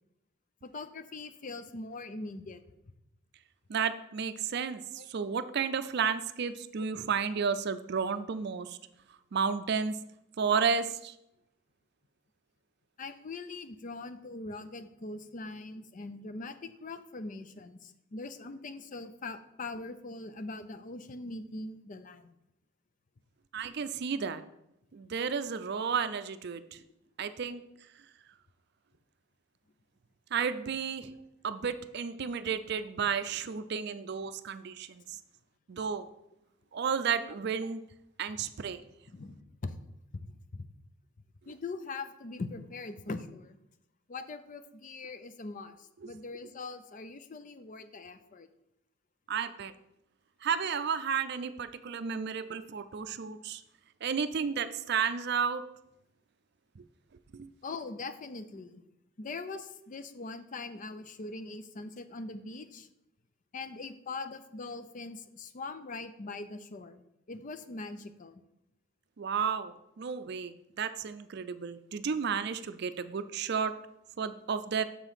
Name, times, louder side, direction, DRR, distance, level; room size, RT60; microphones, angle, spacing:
voice 1, 0.6-2.6 5.0-5.1 6.8-6.9 13.0-22.3 38.4-38.5 39.0-39.7 40.1-40.7 41.5-43.6 44.1-48.5 57.6-58.8 59.2-62.9 63.5-68.4, left 3 dB, 40° left, 10 dB, 0.5 m, -42 dB
voice 2, 3.7-8.8 9.3-10.0 10.4-11.1 23.5-24.4 24.9-26.8 27.2-27.6 30.3-31.1 31.4-35.0 35.7-36.1 36.7-37.8 38.2-38.8 49.3-49.7 50.4-53.6 54.0-55.6 57.3-57.5 69.2-73.7 74.2-74.8, right 6 dB, 55° right, 12 dB, 0.4 m, -32 dB
6.8 x 5.0 x 5.6 m, 0.83 s
head